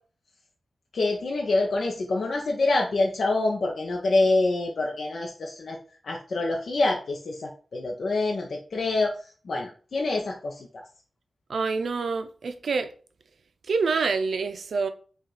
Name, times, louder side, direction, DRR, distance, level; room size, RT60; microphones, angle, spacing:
voice 1, 0.9-5.8 6.0-10.8, left 2 dB, 75° left, 0.6 m, -26 dB
voice 2, 11.5-12.9 13.7-14.9, right 4 dB, 85° right, 0.5 m, -26 dB
5.4 x 2.4 x 3.9 m
cardioid pair, 65°, 0 cm